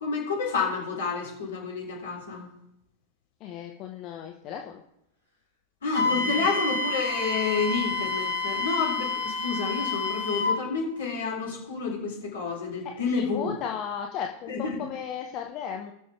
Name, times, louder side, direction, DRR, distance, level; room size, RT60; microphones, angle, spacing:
voice 1, 0.0-2.5 5.8-13.5 14.5-14.8, left 4 dB, 65° left, -2 dB, 3.5 m, -29 dB
voice 2, 3.4-4.8 6.1-6.5 13.1-15.9, left 8 dB, 40° left, 3 dB, 0.8 m, -35 dB
Wind instrument woodwind instrument, 5.9-10.6, left 3 dB, 85° left, 2.7 m, -29 dB
19.0 x 6.5 x 3.4 m, 0.80 s
figure-of-eight pair, 90°, 0 cm